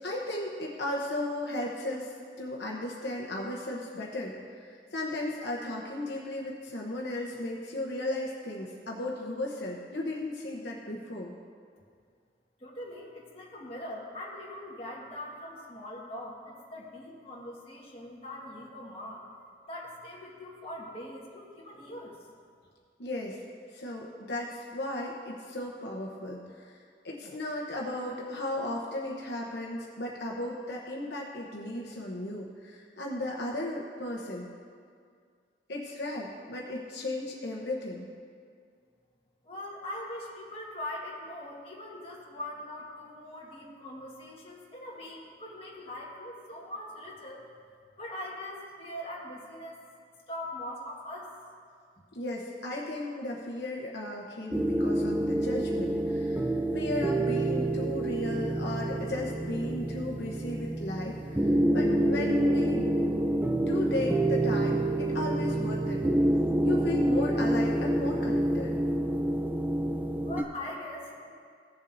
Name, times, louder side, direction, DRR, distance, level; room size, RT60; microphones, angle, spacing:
voice 1, 0.0-11.3 23.0-23.4 23.7-26.8 27.0-34.5 35.7-38.1 52.1-62.9 63.7-66.0 66.6-68.7, left 1 dB, 70° left, -2 dB, 0.9 m, -35 dB
voice 2, 12.6-19.2 19.7-22.2 39.4-47.4 48.0-49.8 50.3-51.3 70.2-71.3, left 1 dB, 35° left, -4 dB, 1.6 m, -41 dB
sound 1, 54.5-70.4, right 1 dB, 10° right, 0.4 m, -27 dB
16.5 x 7.1 x 2.6 m, 2.1 s
head